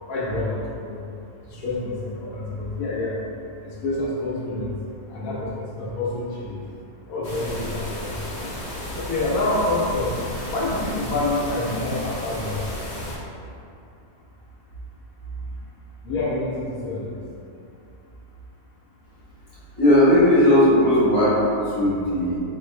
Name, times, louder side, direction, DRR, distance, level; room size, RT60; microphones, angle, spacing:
voice 1, 0.1-1.0 1.5-3.2 3.6-4.7 5.1-6.6 7.1-8.5 8.9-10.2 10.5-12.6 16.0-17.2, left 2 dB, 85° left, -5 dB, 1.1 m, -27 dB
sound 1, 7.2-13.2, left 1 dB, 55° left, 1.1 m, -33 dB
voice 2, 19.8-22.4, left 1 dB, 35° left, -9 dB, 1.1 m, -17 dB
3.7 x 2.6 x 3.1 m, 2.5 s
omnidirectional pair, 1.5 m